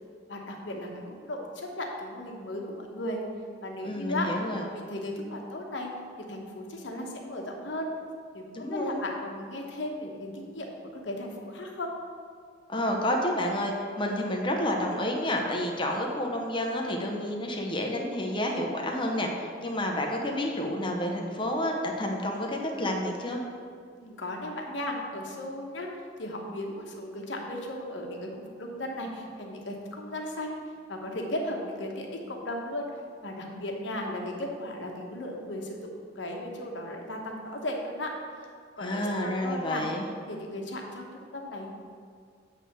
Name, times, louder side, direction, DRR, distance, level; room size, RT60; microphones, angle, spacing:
voice 1, 0.3-3.2 3.6-4.3 4.6-5.9 6.3-7.9 8.3-10.7 10.9-11.9 24.0-25.9 26.2-30.6 30.9-32.9 33.2-39.9 40.3-41.7, left 1 dB, 65° left, 1 dB, 1.1 m, -36 dB
voice 2, 3.8-4.6 8.5-9.0 12.7-23.4 38.8-40.0, left 1 dB, 25° left, 1 dB, 0.7 m, -30 dB
8.3 x 3.3 x 6.5 m, 2.1 s
head